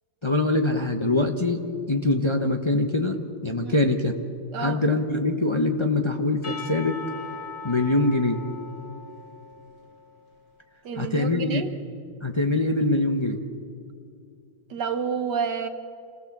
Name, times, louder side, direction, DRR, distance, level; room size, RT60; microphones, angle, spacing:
voice 1, 0.2-4.1 4.6-7.0 7.6-8.4 11.0-11.7 12.2-13.4, left 2 dB, 25° left, 3 dB, 0.6 m, -23 dB
voice 2, 4.5-4.8 10.8-11.7 14.7-15.7, right 6 dB, 60° right, 8 dB, 1.7 m, -29 dB
Percussion / Church bell, 6.4-10.4, left 4 dB, 45° left, 3.5 m, -40 dB
27.5 x 18.0 x 7.4 m, 2.4 s
omnidirectional pair, 2.2 m